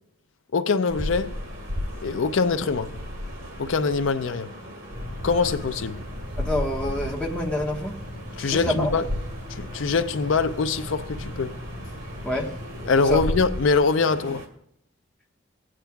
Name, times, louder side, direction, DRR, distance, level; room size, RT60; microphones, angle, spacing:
voice 1, 0.5-1.4 2.0-2.9 3.6-4.5 5.2-6.0 8.4-9.1 9.5-11.5 12.8-14.5, left 4 dB, 70° left, 0.5 m, -23 dB
sound 1, 0.9-14.5, left 1 dB, 85° right, 1.9 m, -35 dB
sound 2, 4.9-13.3, left 1 dB, 55° right, 2.6 m, -38 dB
voice 2, 6.4-7.9 8.4-8.9 12.2-12.5 13.1-13.2, left 1 dB, 5° left, 1.2 m, -27 dB
20.0 x 8.7 x 2.3 m
head